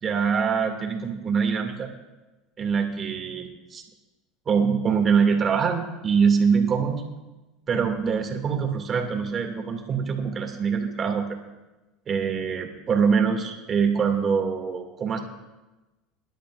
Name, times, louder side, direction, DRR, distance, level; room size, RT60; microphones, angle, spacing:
voice 1, 0.0-1.9 2.6-3.8 4.5-7.0 7.7-11.3 12.1-15.2, right 6 dB, 35° right, 3 dB, 2.3 m, -24 dB
23.5 x 12.0 x 2.5 m, 1.1 s
supercardioid pair, 110°, 0 cm